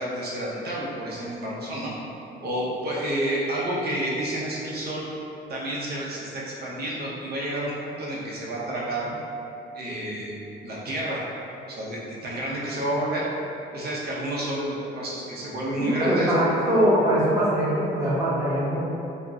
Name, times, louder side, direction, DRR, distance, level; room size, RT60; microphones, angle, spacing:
voice 1, 0.0-1.9 2.4-5.1 5.5-9.1 9.7-10.4 10.6-11.2 11.7-13.3 13.7-16.3, right 1 dB, 55° right, -5 dB, 0.7 m, -30 dB
voice 2, 15.8-18.8, equal, 15° right, -10 dB, 1.1 m, -22 dB
2.4 x 2.0 x 3.4 m, 2.8 s
cardioid pair, 90°, 20 cm